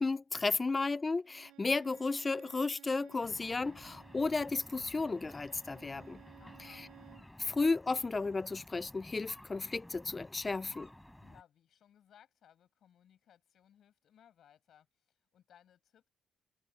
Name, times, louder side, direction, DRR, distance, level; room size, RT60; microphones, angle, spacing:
voice 1, 0.0-6.2 7.4-10.9, left 3 dB, 25° left, 0.4 m, -33 dB
Bowed string instrument, 1.2-7.3, right 17 dB, 90° right, 0.7 m, -59 dB
sound 1, 3.2-11.4, left 1 dB, 5° left, 5.2 m, -54 dB
voice 2, 6.4-6.9 11.2-16.1, left 9 dB, 65° left, 5.7 m, -64 dB
cardioid pair, 90°, 0 cm